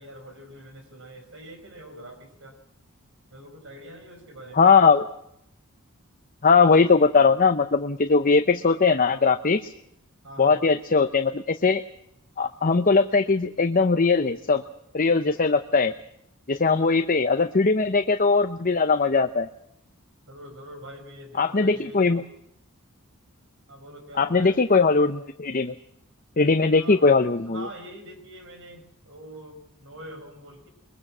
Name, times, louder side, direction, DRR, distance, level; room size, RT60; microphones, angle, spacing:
voice 1, 0.0-2.6 3.3-4.7 10.2-10.7 20.3-22.2 23.7-24.6 26.7-27.1 27.5-30.7, right 1 dB, 60° right, 6 dB, 5.6 m, -44 dB
voice 2, 4.6-5.1 6.4-9.7 10.4-11.8 12.4-14.6 14.9-15.9 16.5-19.5 21.4-22.2 24.2-25.7 26.4-27.7, left 4 dB, 40° left, 8 dB, 0.8 m, -20 dB
22.5 x 22.0 x 6.2 m, 0.77 s
head